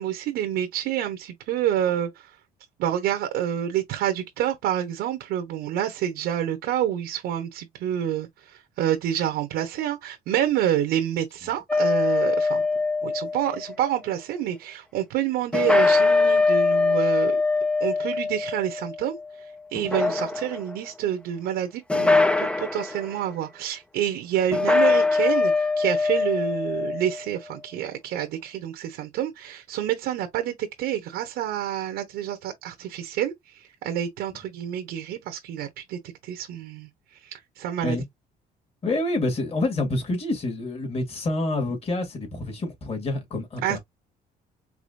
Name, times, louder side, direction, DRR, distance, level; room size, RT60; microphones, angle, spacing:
voice 1, 0.0-2.3 2.8-12.6 13.0-17.4 17.8-19.2 19.7-36.9 37.2-38.0 43.6-43.8, right 11 dB, 85° right, 1.0 m, -28 dB
sound 1, 11.7-13.7 15.5-19.3 19.7-20.7 21.9-23.0 24.5-27.2, left 3 dB, 5° left, 0.4 m, -22 dB
voice 2, 38.8-43.8, left 2 dB, 35° left, 2.2 m, -27 dB
4.9 x 2.8 x 2.6 m
cardioid pair, 110°, 17 cm